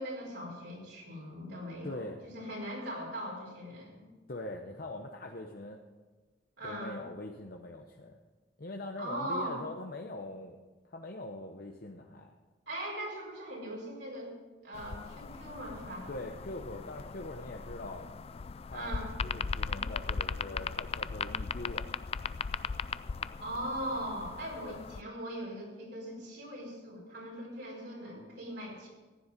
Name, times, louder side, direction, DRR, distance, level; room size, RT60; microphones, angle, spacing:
voice 1, 0.0-4.1 6.6-7.0 9.0-9.6 12.7-14.4 14.6-16.1 18.7-19.1 23.4-28.9, right 1 dB, 70° right, -3 dB, 4.9 m, -40 dB
voice 2, 1.8-2.2 4.3-5.8 6.6-8.2 8.6-10.6 10.8-12.3 16.1-18.1 18.7-18.9 19.2-21.9 24.6-24.8, left 2 dB, 55° left, 2 dB, 0.9 m, -42 dB
sound 1, 14.7-25.0, left 5 dB, 35° left, 0.3 m, -38 dB
15.0 x 10.0 x 5.2 m, 1.3 s
head